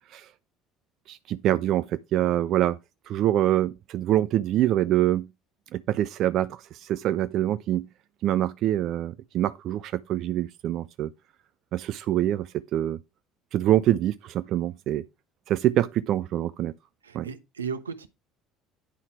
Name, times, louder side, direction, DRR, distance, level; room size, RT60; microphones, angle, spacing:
voice 1, 1.1-2.8 3.1-5.3 5.7-7.9 8.2-11.1 11.7-13.0 13.5-15.1 15.5-16.7 17.1-17.3, right 13 dB, 55° right, 0.5 m, -25 dB
voice 2, 17.0-18.1, right 6 dB, 85° right, 1.0 m, -35 dB
9.9 x 5.6 x 4.6 m
figure-of-eight pair, 60°, 0 cm